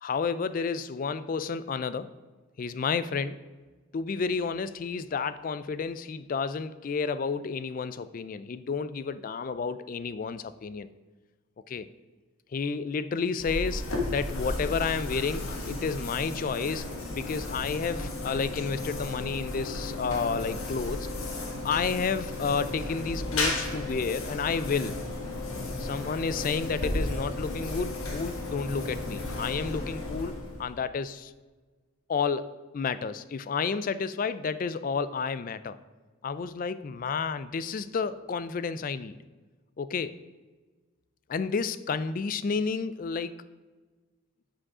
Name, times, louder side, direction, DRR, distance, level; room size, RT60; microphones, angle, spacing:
voice 1, 0.0-2.1 2.6-3.4 3.9-10.9 11.7-11.9 12.5-21.1 21.6-25.0 25.8-31.3 32.1-35.8 36.2-39.2 39.8-40.2 41.3-43.4, left 5 dB, 40° left, 14 dB, 0.3 m, -31 dB
sound 1, 13.4-30.8, left 2 dB, 85° left, 1.5 m, -34 dB
8.6 x 5.0 x 4.8 m, 1.3 s
head